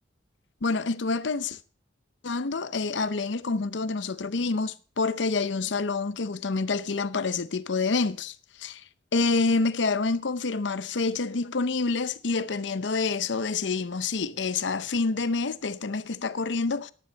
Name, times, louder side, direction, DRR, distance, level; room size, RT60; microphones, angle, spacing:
voice 1, 0.6-1.6 2.2-8.8 9.1-16.9, left 4 dB, 70° left, 0.7 m, -27 dB
12.5 x 11.0 x 4.1 m
head